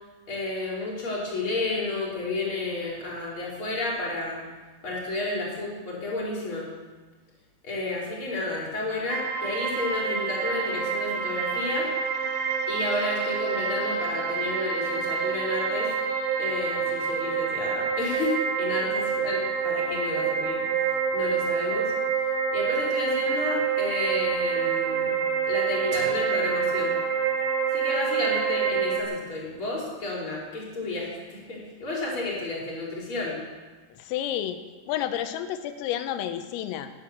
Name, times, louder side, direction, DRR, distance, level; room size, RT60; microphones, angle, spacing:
voice 1, 0.3-4.4 4.8-6.7 7.6-11.9 12.7-15.9 16.4-20.6 21.1-21.9 22.5-25.1 25.5-27.0 27.7-33.4, left 2 dB, 25° left, -4 dB, 4.3 m, -31 dB
sound 1, 9.1-29.0, right 6 dB, 80° right, 4.0 m, -27 dB
voice 2, 33.9-34.6 34.9-36.9, left 11 dB, 85° left, 9 dB, 3.7 m, -30 dB
18.0 x 10.5 x 7.3 m, 1.4 s
omnidirectional pair, 5.9 m